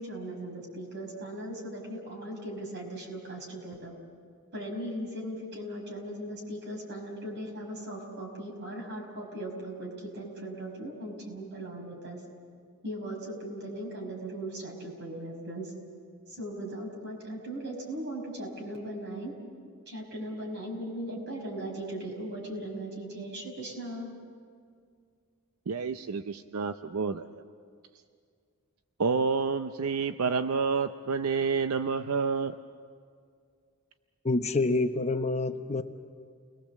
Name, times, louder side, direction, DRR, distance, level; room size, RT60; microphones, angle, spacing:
voice 1, 0.0-4.0 4.5-12.2 12.8-15.7 16.3-19.3 19.9-24.1, right 1 dB, 55° right, 0 dB, 5.9 m, -38 dB
voice 2, 25.7-27.4 29.0-32.6, right 5 dB, 80° right, 9 dB, 0.6 m, -29 dB
voice 3, 34.2-35.8, left 2 dB, 30° left, 7 dB, 0.9 m, -27 dB
30.0 x 21.0 x 7.4 m, 2.1 s
head